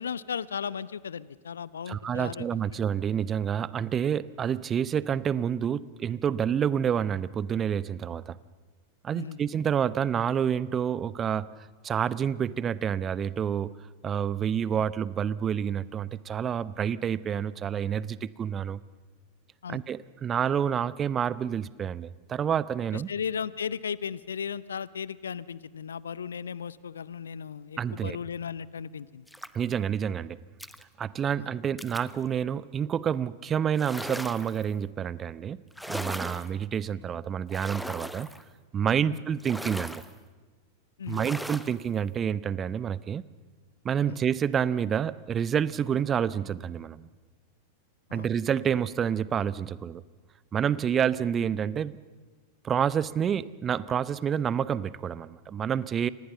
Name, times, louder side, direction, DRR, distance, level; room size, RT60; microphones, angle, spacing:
voice 1, 0.0-2.8 9.1-9.4 19.6-19.8 22.9-29.3 31.4-31.5 39.1-39.2 41.0-41.3 44.1-44.2 48.1-48.3, left 7 dB, 70° left, 20 dB, 0.7 m, -36 dB
voice 2, 1.9-8.4 9.0-11.5 11.8-13.8 14.0-18.8 19.7-23.1 27.8-28.2 29.5-30.4 31.0-35.6 35.9-38.3 38.7-40.0 41.1-43.2 43.8-47.1 48.1-50.0 50.5-52.0 52.6-56.1, right 8 dB, 25° right, 18 dB, 0.7 m, -28 dB
sound 1, 29.3-29.7 30.6-30.8 31.8-32.2 33.7-34.6 35.7-36.5 37.5-38.4 39.4-40.1 41.1-41.8, equal, ahead, 1.0 m, -38 dB
29.5 x 25.5 x 6.8 m, 1.3 s
figure-of-eight pair, 90°, 0 cm